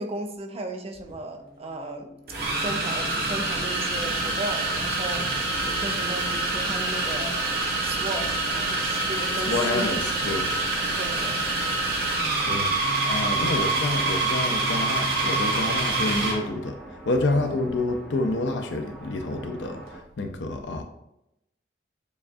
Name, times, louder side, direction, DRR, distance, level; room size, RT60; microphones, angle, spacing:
voice 1, 0.0-2.1 2.5-5.3 5.6-7.4 7.8-10.0 11.0-11.4 17.3-17.6, right 1 dB, 35° right, 0.5 m, -35 dB
sound 1, 0.9-1.1 2.3-16.4, right 2 dB, 60° right, 1.2 m, -26 dB
sound 2, 1.0-20.0, right 1 dB, 5° left, 0.7 m, -45 dB
voice 2, 9.5-10.5 12.4-20.8, left 2 dB, 80° left, 0.6 m, -28 dB
6.9 x 2.4 x 2.6 m
head